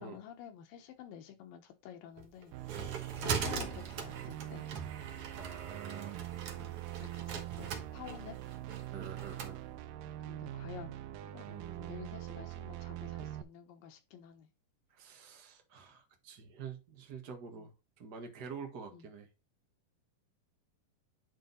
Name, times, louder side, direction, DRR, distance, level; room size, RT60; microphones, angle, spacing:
voice 1, 0.0-2.5 3.2-4.7 6.5-8.4 10.0-11.4 11.9-14.5 17.5-17.7 18.9-19.1, left 9 dB, 90° left, 3.0 m, -50 dB
sound 1, 2.2-9.5, right 6 dB, 60° right, 1.7 m, -41 dB
sound 2, 2.5-13.4, right 13 dB, 80° right, 2.2 m, -43 dB
voice 2, 5.3-6.2 8.9-9.6 11.4-12.0 14.9-19.3, right 6 dB, 40° right, 1.5 m, -47 dB
10.0 x 3.9 x 4.0 m
omnidirectional pair, 3.9 m